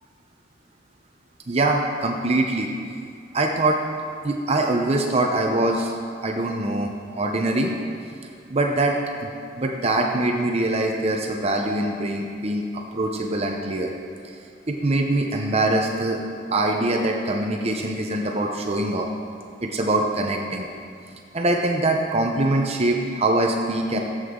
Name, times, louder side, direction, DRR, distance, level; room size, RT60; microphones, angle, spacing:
voice 1, 1.5-2.7 3.3-3.8 4.2-5.9 6.2-7.7 8.5-9.0 9.2-9.3 9.6-12.6 12.9-13.9 14.7-16.2 16.5-19.1 19.6-20.7 21.3-24.0, right 2 dB, 35° right, 1 dB, 0.7 m, -23 dB
15.0 x 8.0 x 3.8 m, 2.3 s
head